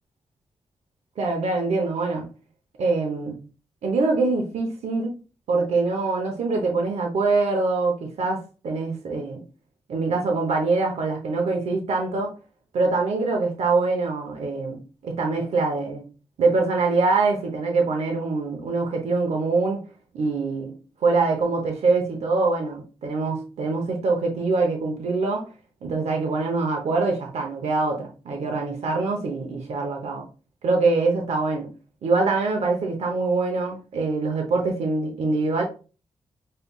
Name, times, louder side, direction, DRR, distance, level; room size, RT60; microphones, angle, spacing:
voice 1, 1.2-2.3 2.8-3.4 3.8-5.1 5.5-9.4 9.9-12.3 12.7-14.8 15.0-16.0 16.4-19.8 20.1-20.7 21.0-25.5 25.8-30.2 30.6-31.7 32.0-35.6, right 3 dB, 90° right, 0.8 m, -24 dB
5.4 x 3.3 x 2.3 m
cardioid pair, 95°, 11 cm